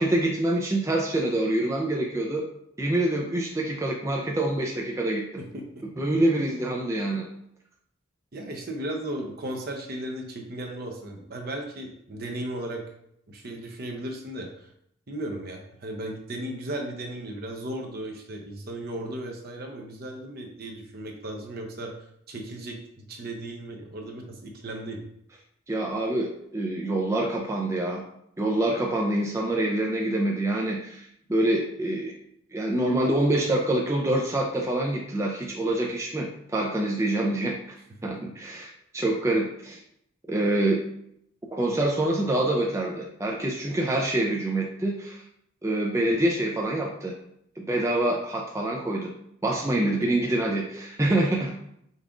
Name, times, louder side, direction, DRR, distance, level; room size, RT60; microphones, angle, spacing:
voice 1, 0.0-2.5 2.8-5.4 6.0-7.3 25.7-28.0 28.4-32.1 32.5-37.6 38.0-39.8 40.3-40.8 41.5-45.2 45.6-47.1 47.6-49.1 49.4-51.5, right 1 dB, 15° right, -1 dB, 0.4 m, -26 dB
voice 2, 8.3-12.8 13.3-14.7 15.1-21.9 22.3-25.0 49.8-50.1, right 1 dB, 50° right, 2 dB, 0.8 m, -36 dB
5.4 x 3.5 x 2.5 m, 0.73 s
head